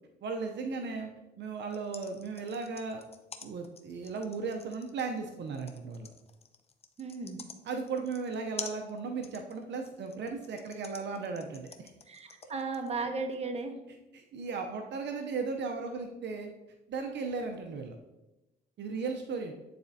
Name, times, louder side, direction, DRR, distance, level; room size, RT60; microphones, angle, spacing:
voice 1, 0.2-1.1 1.4-3.0 3.4-6.1 7.6-11.9 14.1-16.5 16.9-18.0 18.8-19.5, right 4 dB, 60° right, 4 dB, 0.6 m, -36 dB
sound 1, 1.6-12.9, left 5 dB, 30° left, 0.6 m, -47 dB
voice 2, 7.0-7.4 12.1-13.7, right 4 dB, 30° right, 4 dB, 1.0 m, -35 dB
9.4 x 4.2 x 2.7 m, 1.0 s
cardioid pair, 90°, 20 cm